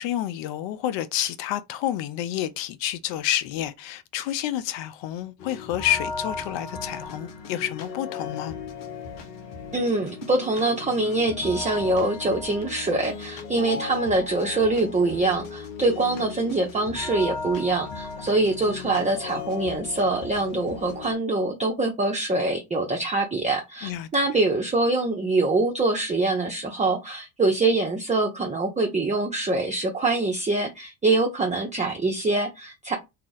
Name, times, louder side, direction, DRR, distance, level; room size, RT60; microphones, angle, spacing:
voice 1, 0.0-8.5 23.8-24.1, left 12 dB, 65° left, 0.5 m, -29 dB
sound 1, 5.4-21.1, left 4 dB, 85° left, 0.9 m, -36 dB
voice 2, 9.7-32.9, right 2 dB, 15° right, 0.7 m, -24 dB
2.8 x 2.4 x 3.9 m
hypercardioid pair, 65°, 47 cm